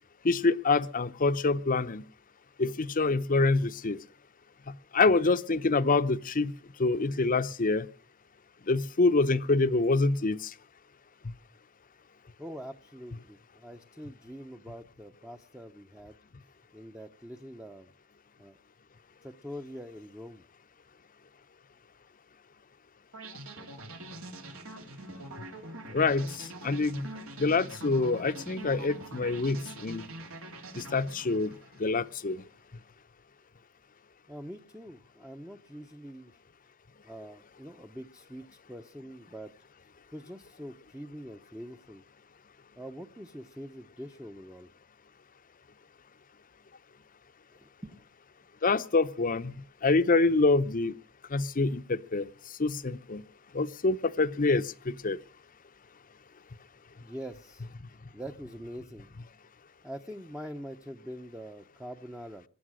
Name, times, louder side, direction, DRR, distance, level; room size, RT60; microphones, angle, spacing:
voice 1, 0.2-2.0 2.6-4.0 4.9-6.5 6.8-7.9 8.7-10.4 25.9-26.3 26.6-27.1 27.4-30.0 30.8-31.5 31.8-32.4 48.6-49.5 49.8-50.9 51.3-52.3 52.6-53.2 53.5-54.6 55.0-55.2, left 3 dB, 40° left, 0.8 m, -26 dB
voice 2, 12.4-16.2 16.7-17.9 18.4-18.6 19.2-20.4 34.3-36.3 37.0-39.5 40.1-42.0 42.8-44.7 47.5-48.1 57.0-57.7 58.1-59.1 59.8-62.4, equal, 5° right, 0.8 m, -44 dB
sound 1, 23.1-32.2, right 1 dB, 75° right, 2.9 m, -44 dB
22.5 x 9.2 x 6.4 m
head